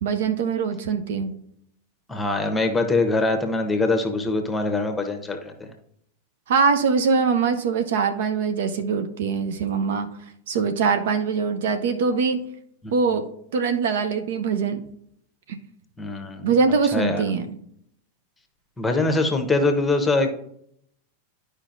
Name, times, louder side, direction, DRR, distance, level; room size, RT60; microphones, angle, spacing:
voice 1, 0.0-1.3 6.5-10.1 10.5-12.4 12.9-13.2 13.5-14.8 16.4-17.6, right 5 dB, 55° right, 8 dB, 0.6 m, -22 dB
voice 2, 2.1-5.7 12.8-12.9 16.0-16.5 16.9-17.2 18.8-20.3, left 2 dB, 10° left, 5 dB, 1.0 m, -23 dB
11.5 x 5.1 x 2.6 m, 0.71 s
figure-of-eight pair, 90°, 0 cm